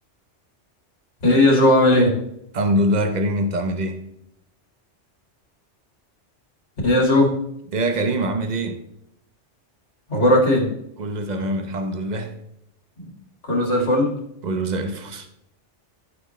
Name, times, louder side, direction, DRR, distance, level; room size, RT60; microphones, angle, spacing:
voice 1, 1.2-2.2 6.8-7.3 10.1-10.7 13.0-13.1 13.4-14.1, left 1 dB, 70° left, 2.6 m, -17 dB
voice 2, 2.5-4.0 7.7-8.8 11.0-12.4 14.4-15.3, right 1 dB, 40° right, 1.0 m, -24 dB
13.5 x 6.1 x 3.2 m
omnidirectional pair, 1.2 m